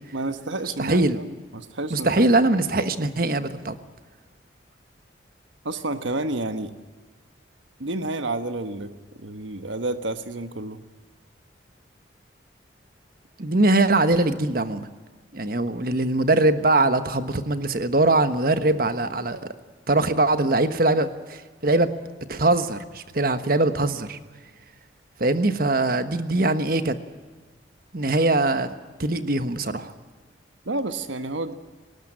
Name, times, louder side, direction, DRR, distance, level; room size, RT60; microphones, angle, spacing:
voice 1, 0.1-2.2 5.6-6.7 7.8-8.9 9.2-10.8 30.6-31.6, right 2 dB, 85° right, 10 dB, 1.3 m, -30 dB
voice 2, 0.8-1.2 1.9-3.8 13.4-14.9 15.3-19.4 19.9-21.9 22.3-24.2 25.2-27.0 27.9-28.7 29.0-29.9, right 2 dB, 50° right, 10 dB, 1.3 m, -22 dB
19.0 x 19.0 x 9.9 m, 1.4 s
head